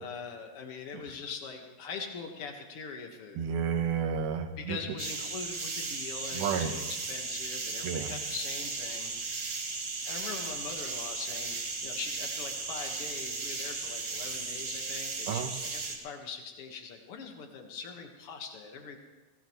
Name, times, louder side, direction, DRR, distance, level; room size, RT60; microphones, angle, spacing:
voice 1, 0.0-3.5 4.6-9.4 10.0-19.0, left 5 dB, 50° left, 3 dB, 1.9 m, -42 dB
voice 2, 3.4-4.8 6.3-6.8 7.8-8.2 15.3-15.5, right 7 dB, 80° right, 6 dB, 3.0 m, -31 dB
sound 1, 5.0-16.0, right 4 dB, 45° right, 2.6 m, -36 dB
21.0 x 18.0 x 3.2 m, 1.3 s
omnidirectional pair, 4.3 m